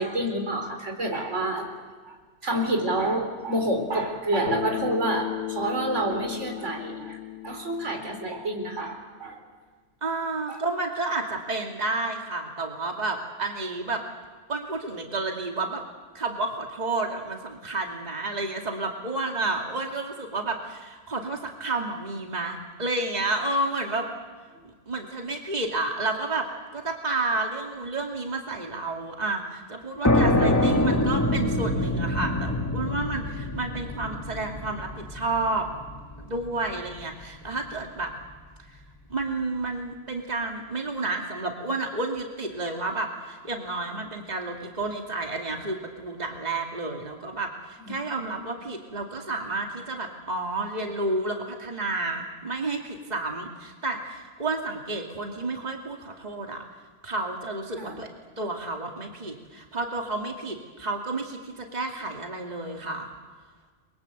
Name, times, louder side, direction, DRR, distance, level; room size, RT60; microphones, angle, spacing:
voice 1, 0.0-1.7 2.0-2.2 2.4-7.2 7.4-9.4 10.5-10.6 47.9-48.0 57.8-58.0, right 1 dB, 80° right, 4 dB, 4.6 m, -28 dB
Bass guitar, 4.5-8.8, left 12 dB, 70° left, 2.3 m, -35 dB
voice 2, 10.0-14.0 14.5-15.8 16.1-24.1 24.6-26.5 26.7-35.7 36.2-38.1 38.7-38.8 39.1-56.6 57.0-58.1 58.4-63.1, right 2 dB, 35° right, 2 dB, 2.6 m, -31 dB
sound 1, 30.0-37.4, left 1 dB, 15° left, 1.8 m, -25 dB
30.0 x 23.5 x 8.0 m, 1.5 s
omnidirectional pair, 1.2 m